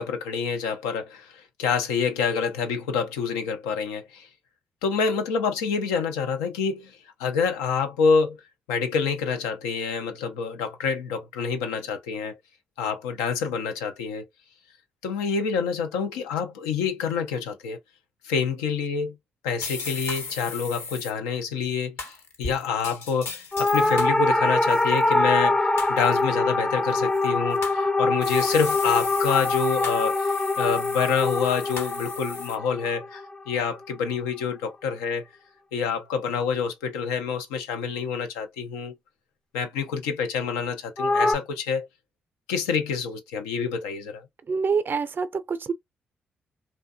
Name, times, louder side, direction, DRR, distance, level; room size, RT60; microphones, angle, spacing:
voice 1, 0.0-4.3 4.8-8.4 8.7-12.4 12.8-14.2 15.0-17.8 18.2-19.2 19.4-35.2 35.7-38.9 39.5-41.9 42.5-44.2, left 6 dB, 90° left, 0.4 m, -27 dB
sound 1, 19.6-21.1 22.0-24.2 24.6-25.1 25.8-26.2 27.1-27.8 28.2-32.6, left 4 dB, 65° left, 0.8 m, -36 dB
sound 2, 23.5-34.0 41.0-41.3, left 2 dB, 15° left, 0.4 m, -24 dB
voice 2, 44.5-45.7, right 5 dB, 45° right, 0.5 m, -26 dB
2.6 x 2.2 x 2.2 m
hypercardioid pair, 40°, 5 cm